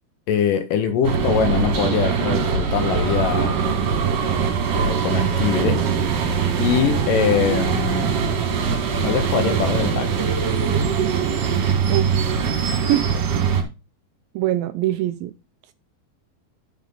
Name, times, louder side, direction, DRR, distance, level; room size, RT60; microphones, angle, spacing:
voice 1, 0.3-3.6 4.7-5.9 6.1-6.3 6.6-8.2 9.0-10.3, left 8 dB, 70° left, 2.2 m, -23 dB
sound 1, 1.0-13.6, right 6 dB, 65° right, 3.5 m, -22 dB
voice 2, 11.9-12.2 12.7-13.3 14.4-15.3, right 13 dB, 80° right, 2.2 m, -24 dB
10.5 x 6.6 x 3.9 m
omnidirectional pair, 4.5 m